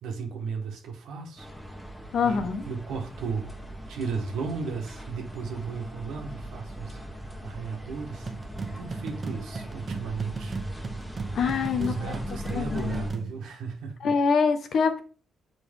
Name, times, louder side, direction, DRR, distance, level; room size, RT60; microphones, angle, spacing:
voice 1, 0.0-1.5 2.2-3.6 3.9-7.0 7.4-8.3 8.8-10.6 11.7-14.2, right 5 dB, 75° right, 1.4 m, -35 dB
sound 1, 1.4-13.1, equal, 10° left, 1.4 m, -40 dB
voice 2, 2.1-2.6 11.3-12.1 12.5-13.1 14.0-15.0, left 5 dB, 65° left, 0.9 m, -25 dB
sound 2, 8.3-13.4, right 3 dB, 40° right, 1.0 m, -36 dB
6.8 x 4.0 x 3.6 m
supercardioid pair, 60°, 0 cm